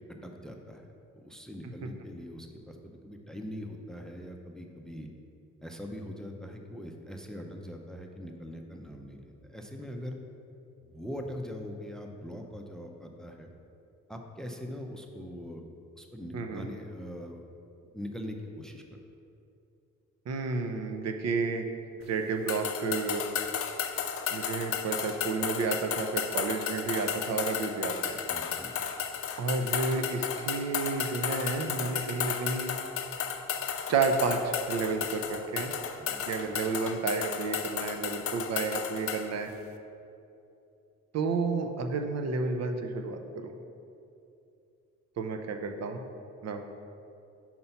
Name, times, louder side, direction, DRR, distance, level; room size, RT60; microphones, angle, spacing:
voice 1, 0.2-0.9 1.2-5.1 5.6-10.2 10.9-13.5 14.1-15.6 16.0-17.5 17.9-18.8 28.3-28.8 36.0-36.2, equal, ahead, 3 dB, 0.5 m, -42 dB
voice 2, 16.3-16.7 20.3-21.7 22.1-23.2 24.3-28.2 29.4-32.7 33.9-35.7 36.3-39.5 41.1-43.5 45.2-46.0 46.4-46.8, right 4 dB, 60° right, 5 dB, 0.6 m, -31 dB
sound 1, 22.5-39.3, left 8 dB, 50° left, 0.5 m, -34 dB
5.5 x 4.4 x 5.7 m, 2.7 s
cardioid pair, 90°, 30 cm